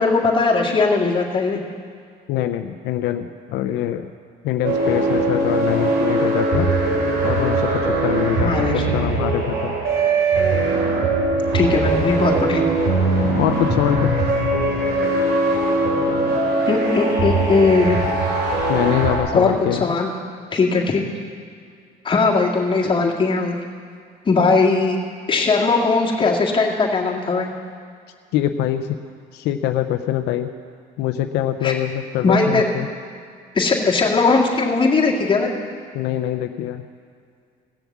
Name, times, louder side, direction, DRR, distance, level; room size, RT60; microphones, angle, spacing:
voice 1, 0.0-1.6 8.4-8.7 9.0-9.1 11.5-12.6 16.7-18.0 19.3-20.1 20.5-21.0 22.0-23.6 24.3-25.0 25.3-27.5 31.6-31.7 32.2-32.6 33.5-35.5, left 4 dB, 30° left, -2 dB, 2.0 m, -19 dB
voice 2, 2.3-4.1 4.4-6.7 7.2-9.7 13.3-14.2 18.7-19.9 28.3-28.9 29.3-30.5 31.0-32.9 35.9-36.8, left 11 dB, 85° left, 7 dB, 0.6 m, -23 dB
sound 1, 4.6-19.2, right 2 dB, 75° right, 3.5 m, -20 dB
16.5 x 7.1 x 7.2 m, 2.2 s
cardioid pair, 110°, 17 cm